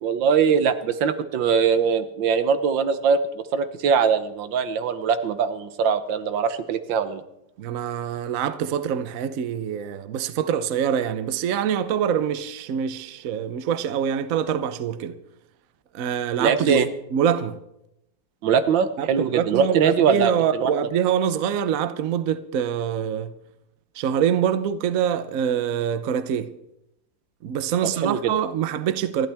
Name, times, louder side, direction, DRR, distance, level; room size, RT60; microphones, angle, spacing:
voice 1, 0.0-7.2 16.4-16.9 18.4-20.7 27.8-28.3, right 6 dB, 75° right, 1.6 m, -22 dB
voice 2, 7.6-15.1 15.9-16.8 17.1-17.6 19.0-23.3 24.0-26.5 27.4-29.3, right 8 dB, 55° right, 1.0 m, -25 dB
28.0 x 11.5 x 3.5 m
omnidirectional pair, 2.1 m